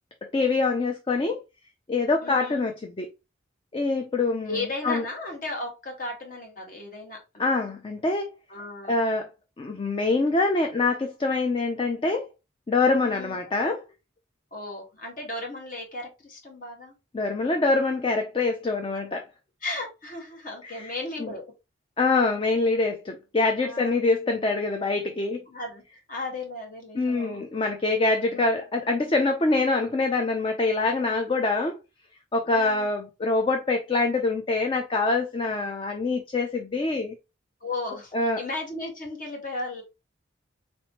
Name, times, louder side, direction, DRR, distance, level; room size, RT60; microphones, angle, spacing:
voice 1, 0.3-1.4 1.9-3.1 3.7-4.6 4.8-5.0 7.4-8.3 8.9-9.3 9.6-12.3 12.7-13.9 17.1-19.2 20.6-20.9 21.2-21.3 22.0-25.4 26.9-31.8 32.3-37.1 38.1-38.4, left 3 dB, 25° left, 0.4 m, -25 dB
voice 2, 2.2-2.7 4.5-7.5 8.5-9.0 13.0-13.4 14.5-16.9 19.6-21.4 23.6-23.9 25.5-25.8 26.1-27.4 28.3-28.6 32.5-32.9 37.6-39.8, left 2 dB, 45° left, 1.4 m, -35 dB
4.2 x 3.0 x 2.8 m
head